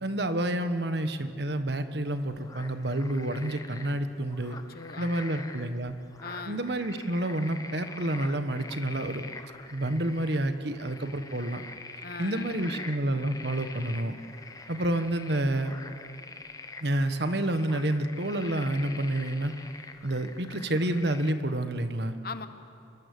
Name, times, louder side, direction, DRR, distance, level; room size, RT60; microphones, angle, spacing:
voice 1, 0.0-4.6 5.0-5.9 6.5-9.2 9.7-11.6 12.2-14.1 14.7-15.7 16.8-19.5 20.0-22.1, right 1 dB, 65° right, 9 dB, 1.4 m, -29 dB
sound 1, 2.1-21.3, left 3 dB, 20° left, 1.0 m, -45 dB
voice 2, 4.5-5.5 6.2-6.6 12.0-12.9 22.2-22.5, left 3 dB, 55° left, 10 dB, 1.2 m, -41 dB
26.5 x 22.5 x 8.4 m, 2.6 s
head